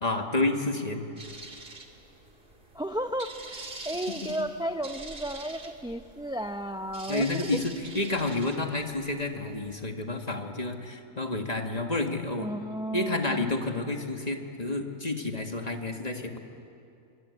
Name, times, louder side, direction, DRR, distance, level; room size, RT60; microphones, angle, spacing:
voice 1, 0.0-1.0 4.2-4.3 7.1-12.5 12.9-16.4, left 2 dB, 30° left, 4 dB, 2.0 m, -30 dB
sound 1, 1.2-9.9, right 3 dB, 50° right, 2.6 m, -45 dB
voice 2, 2.7-7.3 12.4-13.5, right 1 dB, 5° right, 7 dB, 0.5 m, -33 dB
25.0 x 23.5 x 9.7 m, 2.5 s
omnidirectional pair, 1.3 m